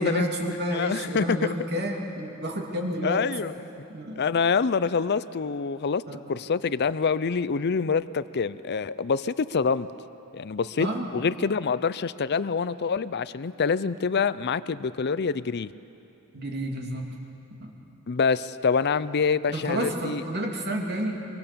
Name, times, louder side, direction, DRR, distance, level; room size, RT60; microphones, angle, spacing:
voice 1, 0.0-3.2 3.9-4.2 6.1-6.2 10.8-11.1 16.3-17.2 17.6-17.7 19.5-21.3, equal, 50° right, 1 dB, 2.8 m, -30 dB
voice 2, 0.7-1.4 3.0-3.5 4.2-6.0 6.3-9.9 10.3-10.9 11.1-15.7 18.1-20.2, left 5 dB, 50° left, 16 dB, 0.5 m, -26 dB
25.0 x 22.5 x 6.9 m, 2.8 s
head